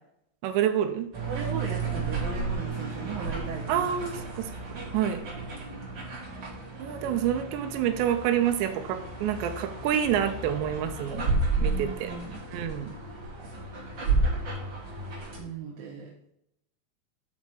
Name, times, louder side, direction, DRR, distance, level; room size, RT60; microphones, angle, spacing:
voice 1, 0.4-1.1 3.7-5.2 6.8-11.3 11.6-12.1 12.5-12.9, right 10 dB, 85° right, 8 dB, 2.9 m, -28 dB
sound 1, 1.1-15.4, right 3 dB, 30° right, 2.3 m, -32 dB
voice 2, 1.3-3.9 11.5-12.4 15.4-16.1, right 6 dB, 65° right, -2 dB, 2.5 m, -37 dB
7.3 x 5.9 x 4.7 m, 0.76 s
omnidirectional pair, 5.2 m